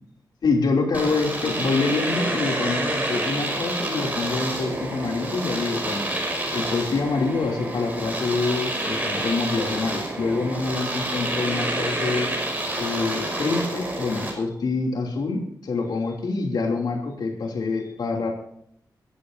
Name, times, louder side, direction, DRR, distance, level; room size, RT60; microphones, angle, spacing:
voice 1, 0.4-6.1 6.5-12.3 12.8-18.3, left 3 dB, 80° left, 1 dB, 2.9 m, -26 dB
Domestic sounds home sounds, 0.9-14.4, right 1 dB, 20° right, 5.5 m, -28 dB
22.5 x 14.5 x 2.7 m, 0.70 s
wide cardioid pair, 140°, 7 cm